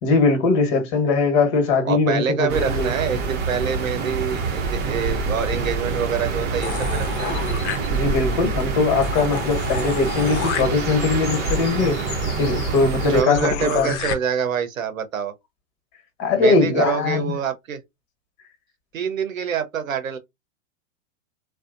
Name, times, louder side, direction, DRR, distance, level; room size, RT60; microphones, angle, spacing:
voice 1, 0.0-2.9 7.9-12.0 12.4-13.9 16.2-17.2, left 4 dB, 40° left, 1.3 m, -20 dB
voice 2, 1.8-7.4 13.1-15.3 16.3-17.8 18.9-20.2, right 7 dB, 80° right, 0.8 m, -26 dB
sound 1, 2.5-13.2, right 4 dB, 25° right, 0.7 m, -26 dB
sound 2, 6.6-8.3 8.7-8.8 9.0-14.1, left 7 dB, 60° left, 0.8 m, -32 dB
2.6 x 2.1 x 2.5 m
hypercardioid pair, 110°, 40 cm